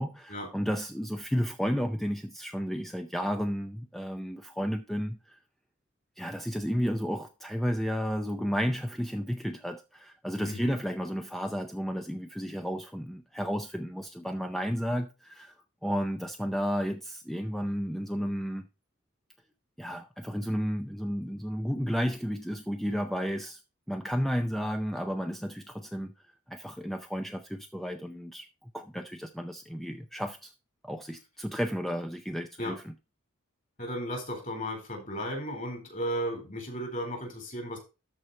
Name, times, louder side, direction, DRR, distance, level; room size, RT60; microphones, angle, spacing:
voice 1, 0.0-5.4 6.2-15.5 15.8-18.7 19.8-23.6 23.9-26.1 26.5-30.5 30.8-32.9, equal, ahead, 0.5 m, -32 dB
voice 2, 33.8-37.8, equal, 35° left, 4.1 m, -34 dB
13.0 x 4.5 x 4.3 m
head